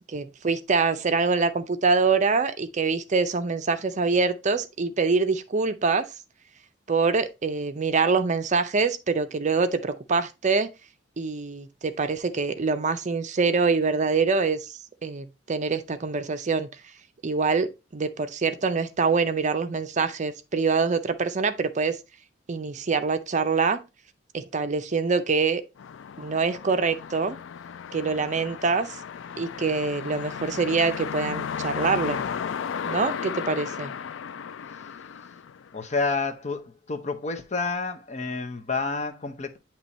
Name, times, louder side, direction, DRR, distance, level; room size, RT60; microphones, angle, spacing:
voice 1, 0.1-6.1 6.9-10.7 11.2-14.7 15.0-16.7 17.2-22.0 22.5-23.8 24.3-25.6 26.2-27.4 27.9-29.0 29.4-32.2 32.8-33.9, right 4 dB, 40° right, 0.5 m, -25 dB
sound 1, 25.8-36.0, left 7 dB, 85° left, 0.4 m, -35 dB
voice 2, 35.7-39.6, left 3 dB, 40° left, 0.7 m, -29 dB
8.8 x 3.0 x 4.1 m
head